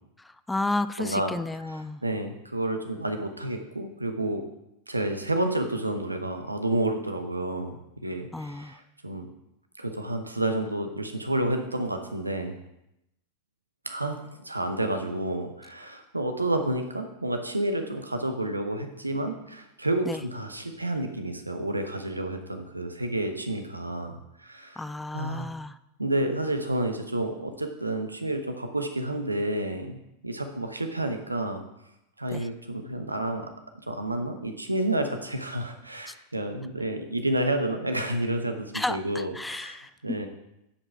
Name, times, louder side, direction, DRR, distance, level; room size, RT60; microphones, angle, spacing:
voice 1, 0.2-2.0 8.3-8.8 20.1-20.2 24.8-25.8 32.3-32.5 36.1-36.2 38.7-40.2, left 2 dB, 5° left, 13 dB, 0.4 m, -32 dB
voice 2, 1.0-1.3 2.0-4.4 4.9-9.3 9.8-12.6 13.8-24.8 25.1-25.5 26.0-31.6 32.2-33.5 33.9-40.3, right 1 dB, 85° right, 6 dB, 0.9 m, -30 dB
10.0 x 5.5 x 4.6 m, 0.86 s
figure-of-eight pair, 90°, 0 cm